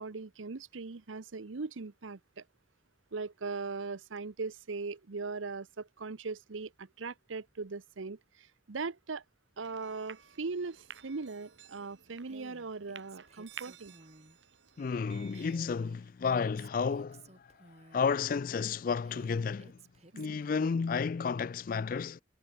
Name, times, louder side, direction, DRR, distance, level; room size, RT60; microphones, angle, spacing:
voice 1, 0.0-2.4 3.1-9.2 9.6-13.9 20.1-20.4, right 4 dB, 90° right, 0.8 m, -40 dB
sound 1, 9.6-15.6, right 8 dB, 70° right, 6.5 m, -53 dB
Female speech woman speaking, 12.2-14.4 15.3-18.2 19.0-20.9, right 2 dB, 35° right, 4.4 m, -56 dB
voice 2, 14.8-17.2 17.9-19.8 20.2-22.2, left 5 dB, 45° left, 0.3 m, -32 dB
head